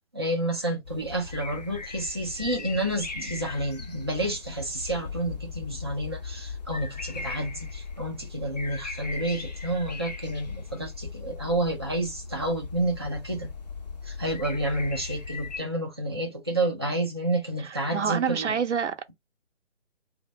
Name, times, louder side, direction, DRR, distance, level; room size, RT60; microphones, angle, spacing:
voice 1, 0.1-13.5 14.0-18.5, right 1 dB, 25° right, 0.4 m, -30 dB
sound 1, 0.8-15.6, left 4 dB, 40° left, 0.4 m, -38 dB
voice 2, 17.6-19.0, right 7 dB, 75° right, 0.7 m, -27 dB
2.4 x 2.1 x 3.9 m
figure-of-eight pair, 145°, 35 cm